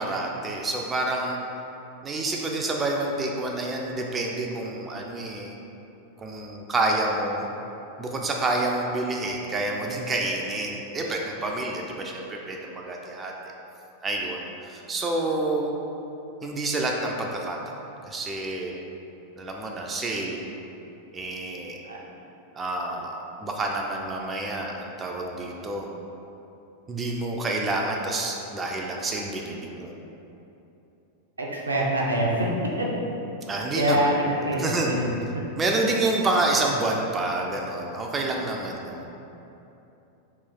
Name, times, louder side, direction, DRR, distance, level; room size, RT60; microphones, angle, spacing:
voice 1, 0.0-1.4 2.0-5.5 6.2-7.5 8.0-13.3 14.0-15.7 16.4-18.8 19.4-20.5 21.1-21.8 22.5-25.9 26.9-30.0 33.5-34.1 34.6-34.9 35.6-39.1, right 2 dB, 20° right, 0 dB, 0.3 m, -28 dB
voice 2, 31.4-32.5 32.8-32.9 33.7-35.0 35.3-35.4, right 1 dB, 80° right, -2 dB, 0.5 m, -25 dB
3.2 x 2.5 x 3.8 m, 2.9 s
figure-of-eight pair, 90°, 0 cm